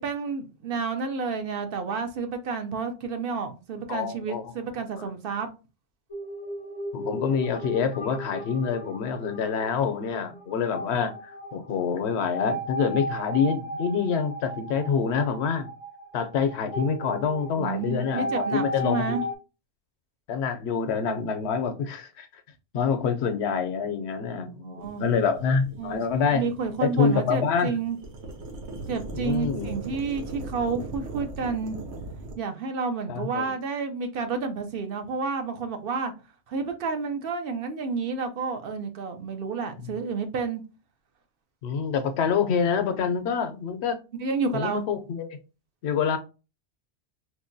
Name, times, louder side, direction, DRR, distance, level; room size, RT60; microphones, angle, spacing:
voice 1, 0.0-5.5 17.6-19.2 24.4-25.1 25.8-26.0 26.3-28.0 28.9-31.8 32.4-36.1 36.5-40.6 44.2-44.9, right 4 dB, 65° right, 0.7 m, -30 dB
voice 2, 3.9-4.5 5.0-5.1 6.9-15.7 16.1-19.2 20.3-22.3 22.7-26.4 26.8-27.7 29.1-29.7 33.1-33.5 39.8-39.9 41.6-44.0 44.5-45.3 45.8-46.2, left 6 dB, 75° left, 0.9 m, -26 dB
sound 1, 6.1-19.4, equal, 30° left, 0.5 m, -35 dB
sound 2, 24.8-32.3, right 2 dB, 90° right, 1.1 m, -39 dB
4.4 x 2.2 x 2.5 m
omnidirectional pair, 1.1 m